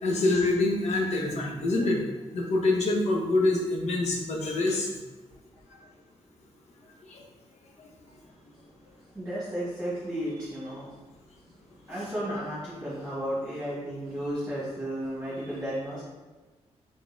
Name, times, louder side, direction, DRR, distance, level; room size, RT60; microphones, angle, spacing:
voice 1, 0.0-2.0 2.3-4.9 7.1-7.2 11.9-12.0, left 2 dB, 75° left, 0 dB, 0.8 m, -25 dB
voice 2, 9.1-10.9 11.8-16.0, equal, 10° right, -9 dB, 1.2 m, -33 dB
3.8 x 3.6 x 2.5 m, 1.2 s
wide cardioid pair, 115°, 12 cm